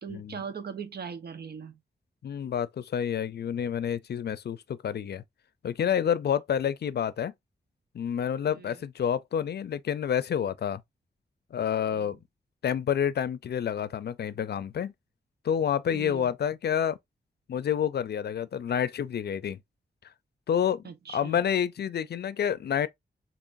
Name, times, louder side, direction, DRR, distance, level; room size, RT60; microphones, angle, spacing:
voice 1, 0.0-1.8 8.5-8.8 11.9-12.1 15.9-16.3 20.8-21.4, right 6 dB, 65° right, 1.0 m, -40 dB
voice 2, 2.2-5.2 5.6-7.3 7.9-10.8 11.5-12.2 12.6-14.9 15.4-17.0 17.5-19.6 20.5-20.8 21.1-22.9, left 8 dB, 70° left, 0.5 m, -28 dB
6.9 x 2.9 x 2.6 m
wide cardioid pair, 105°, 18 cm